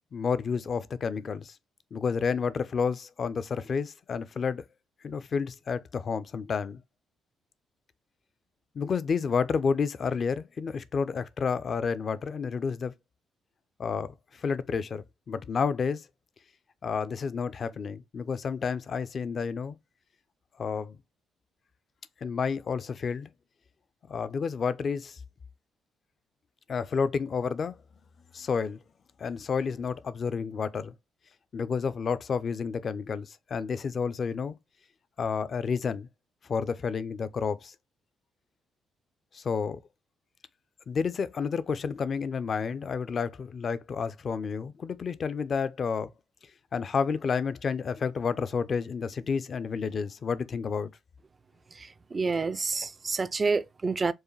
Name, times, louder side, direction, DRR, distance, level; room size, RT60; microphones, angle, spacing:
voice 1, 0.1-1.5 1.9-4.6 5.0-6.8 8.7-12.9 13.8-16.0 16.8-19.8 20.6-21.0 22.2-23.3 24.1-25.2 26.7-27.8 28.3-28.8 29.2-30.9 31.5-34.5 35.2-36.1 36.5-37.7 39.3-39.8 40.9-46.1 46.7-50.9, left 5 dB, 45° left, 0.4 m, -30 dB
voice 2, 51.7-54.1, right 4 dB, 30° right, 0.4 m, -29 dB
4.6 x 2.6 x 3.1 m
cardioid pair, 90°, 0 cm